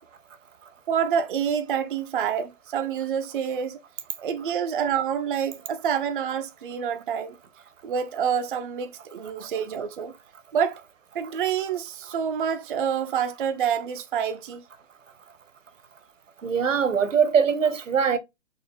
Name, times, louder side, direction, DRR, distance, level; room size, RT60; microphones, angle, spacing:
voice 1, 0.9-3.8 4.2-7.4 7.8-10.1 10.5-10.8 11.1-14.6, right 8 dB, 45° right, 0.4 m, -27 dB
voice 2, 16.4-18.2, right 6 dB, 80° right, 0.8 m, -22 dB
3.9 x 2.4 x 3.6 m
figure-of-eight pair, 140°, 38 cm